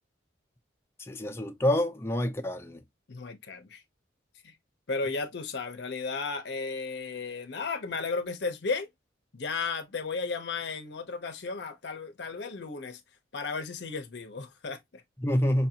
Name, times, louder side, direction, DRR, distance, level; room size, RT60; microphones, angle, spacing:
voice 1, 1.1-2.8 15.2-15.7, left 1 dB, 15° left, 0.6 m, -27 dB
voice 2, 3.1-3.8 4.4-4.6 4.9-8.9 9.3-13.0 13.3-15.0, left 4 dB, 60° left, 0.7 m, -34 dB
5.5 x 2.6 x 2.7 m
head